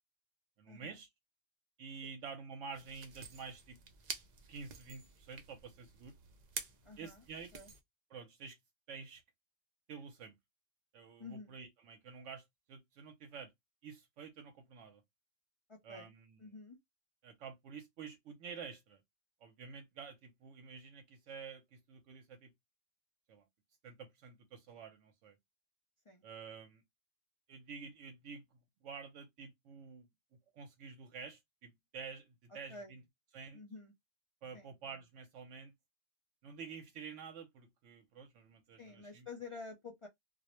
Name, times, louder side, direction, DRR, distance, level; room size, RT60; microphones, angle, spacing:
voice 1, 0.6-1.1 1.8-3.8 4.5-6.1 7.0-7.5 8.1-8.6 8.9-9.2 9.9-10.4 10.9-13.5 13.8-15.0 15.8-16.4 17.2-19.0 19.4-22.5 23.3-23.4 23.8-25.4 26.2-26.8 27.5-30.1 30.5-33.0 33.3-33.6 34.4-35.7 36.4-39.3, right 5 dB, 80° right, 0.9 m, -49 dB
sound 1, 2.7-7.8, right 5 dB, 55° right, 0.5 m, -49 dB
voice 2, 6.8-7.2 7.5-7.7 11.2-11.5 15.7-16.1 16.4-16.8 26.1-26.2 32.7-32.9 33.5-33.9 34.5-34.7 38.8-40.1, left 4 dB, 50° left, 0.3 m, -49 dB
2.3 x 2.0 x 2.9 m
omnidirectional pair, 1.3 m